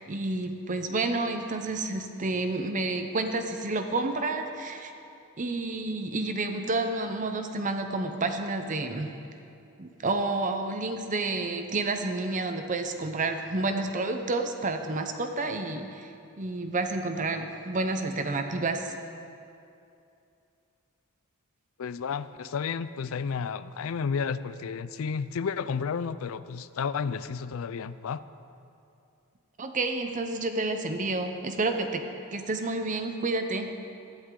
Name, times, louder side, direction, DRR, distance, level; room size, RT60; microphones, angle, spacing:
voice 1, 0.1-4.9 5.4-9.1 9.8-18.9 29.6-32.0 32.3-33.7, right 2 dB, 35° right, 6 dB, 0.7 m, -30 dB
voice 2, 21.8-28.2, left 6 dB, 65° left, 15 dB, 0.4 m, -32 dB
17.5 x 11.5 x 3.8 m, 2.6 s
head